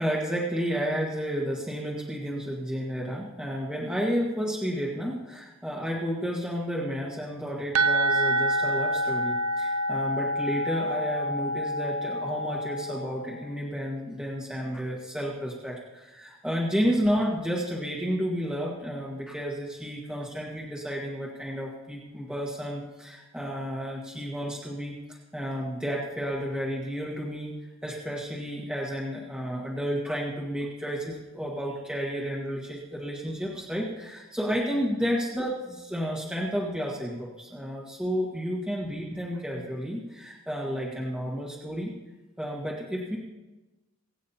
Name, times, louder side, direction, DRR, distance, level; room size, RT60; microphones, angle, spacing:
voice 1, 0.0-27.5 27.8-41.9 42.4-43.2, equal, 5° right, -4 dB, 1.6 m, -31 dB
sound 1, 7.7-13.3, right 1 dB, 80° right, 0.7 m, -27 dB
23.5 x 8.8 x 2.9 m, 1.1 s
head